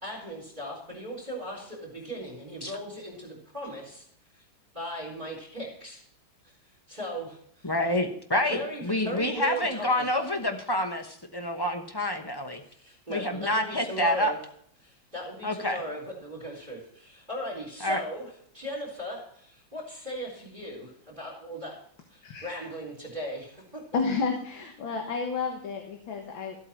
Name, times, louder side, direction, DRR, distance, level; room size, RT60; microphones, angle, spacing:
voice 1, 0.0-4.0 4.3-4.4 4.7-6.0 6.9-7.7 8.4-10.2 12.7-14.4 14.8-21.7 22.1-23.8, equal, 25° right, -5 dB, 4.1 m, -38 dB
voice 2, 7.6-12.6 13.1-14.3 15.4-15.8 17.8-18.0, left 1 dB, 20° left, 5 dB, 0.6 m, -28 dB
voice 3, 22.2-22.5 23.9-26.6, left 4 dB, 80° left, 2 dB, 2.1 m, -31 dB
14.5 x 8.3 x 4.5 m, 0.63 s
omnidirectional pair, 2.1 m